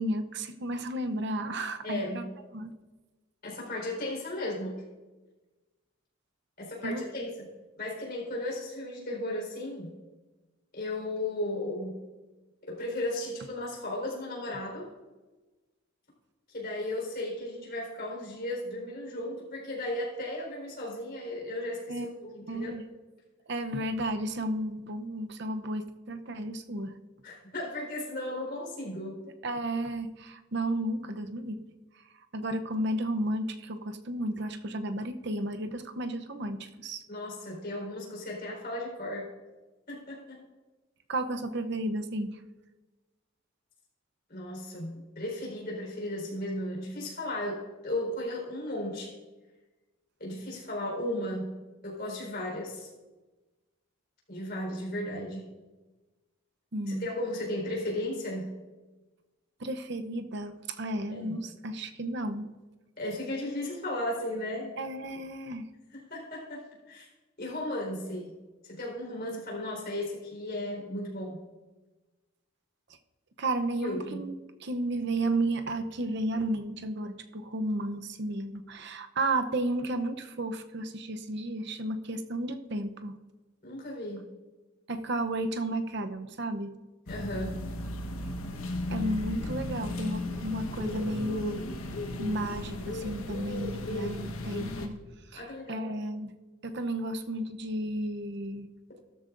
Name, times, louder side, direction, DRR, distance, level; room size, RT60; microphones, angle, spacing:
voice 1, 0.0-2.3 2.5-2.7 6.8-7.0 21.9-22.1 22.5-22.8 23.5-26.9 29.4-31.6 32.3-37.0 41.1-42.4 56.7-57.1 59.6-62.6 64.8-65.7 73.4-83.2 84.9-86.7 88.9-91.7 92.2-95.0 95.3-96.4 96.6-98.7, right 1 dB, 55° right, 8 dB, 0.7 m, -33 dB
voice 2, 1.8-2.3 3.4-4.8 6.6-7.3 7.8-9.9 10.7-12.0 12.6-14.9 16.5-22.7 27.2-29.2 37.1-39.3 39.9-40.4 44.3-49.1 50.2-51.5 51.8-52.9 54.3-55.5 56.9-58.5 61.1-61.4 63.0-64.7 65.9-67.1 67.4-68.3 68.6-71.4 73.8-74.3 83.6-84.3 87.1-87.6 95.3-96.0, left 1 dB, 45° left, -2 dB, 4.3 m, -35 dB
sound 1, 87.1-94.9, left 1 dB, 85° left, 1.2 m, -35 dB
14.0 x 13.0 x 2.6 m, 1.2 s
head